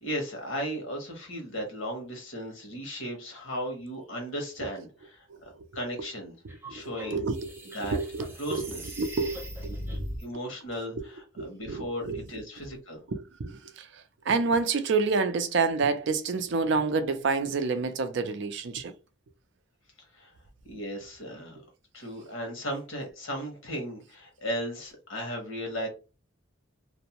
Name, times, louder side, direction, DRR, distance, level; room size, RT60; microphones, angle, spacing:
voice 1, 0.0-5.3 5.7-6.4 6.7-7.3 7.7-8.0 8.4-8.9 10.2-13.0 20.1-20.3 20.6-21.6 21.9-25.9, equal, 70° left, 1.1 m, -36 dB
sound 1, 6.5-10.2, equal, 10° right, 0.6 m, -39 dB
voice 2, 7.1-8.7 9.0-9.4 11.4-12.2 13.1-13.9 14.3-18.9, right 4 dB, 60° right, 0.4 m, -28 dB
2.6 x 2.1 x 2.8 m
head